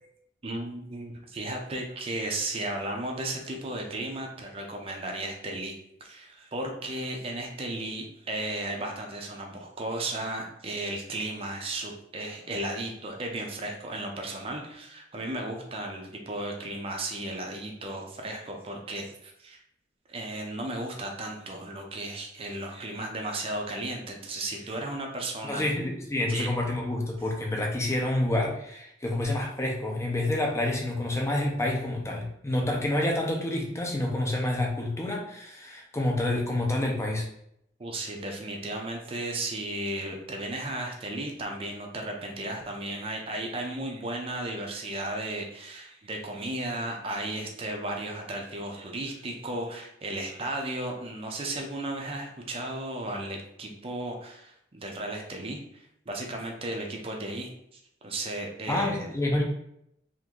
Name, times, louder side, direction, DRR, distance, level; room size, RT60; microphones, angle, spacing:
voice 1, 0.4-5.7 6.0-19.6 20.1-25.6 26.3-26.5 37.8-59.1, right 1 dB, 30° right, 1 dB, 0.6 m, -35 dB
voice 2, 25.4-37.3 58.7-59.4, left 1 dB, 15° left, 0 dB, 0.6 m, -28 dB
2.9 x 2.6 x 3.6 m, 0.74 s
head